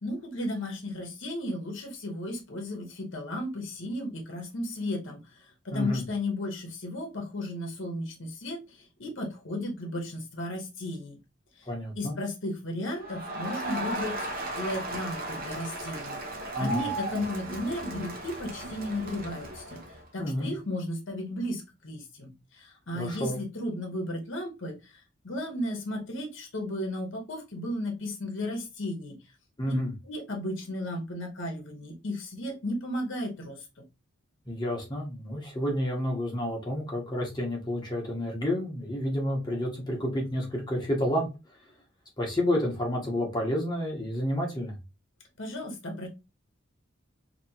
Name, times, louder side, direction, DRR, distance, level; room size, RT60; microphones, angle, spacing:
voice 1, 0.0-11.2 11.6-11.7 12.0-29.2 29.7-29.8 30.0-33.8 45.4-46.1, left 1 dB, 65° left, 1.0 m, -34 dB
voice 2, 5.7-6.0 11.7-12.2 16.6-16.8 20.2-20.5 22.9-23.4 29.6-29.9 34.5-41.3 42.2-44.8, left 1 dB, 20° left, 1.1 m, -30 dB
Crowd, 13.0-20.0, right 1 dB, 45° right, 0.8 m, -36 dB
3.0 x 2.9 x 2.8 m
head